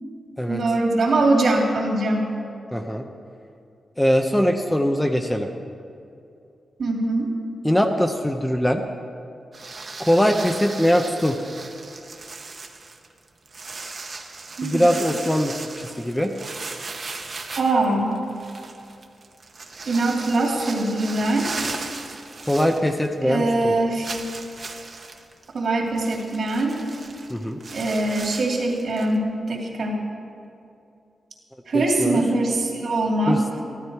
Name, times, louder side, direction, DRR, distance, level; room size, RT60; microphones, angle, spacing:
voice 1, 0.5-2.3 6.8-7.3 14.6-14.9 17.6-18.1 19.8-21.5 23.2-24.2 25.5-26.8 27.7-30.0 31.7-33.4, right 2 dB, 60° right, -1 dB, 2.5 m, -22 dB
voice 2, 2.7-3.0 4.0-5.5 7.6-8.8 10.0-11.4 14.6-16.3 22.5-23.7 27.3-27.6 31.7-32.2 33.3-33.6, equal, 5° left, 4 dB, 0.6 m, -21 dB
sound 1, 9.5-23.3 23.6-23.7 24.0-29.2, right 3 dB, 40° right, 1.0 m, -37 dB
14.5 x 12.5 x 4.6 m, 2.6 s
wide cardioid pair, 150°, 0 cm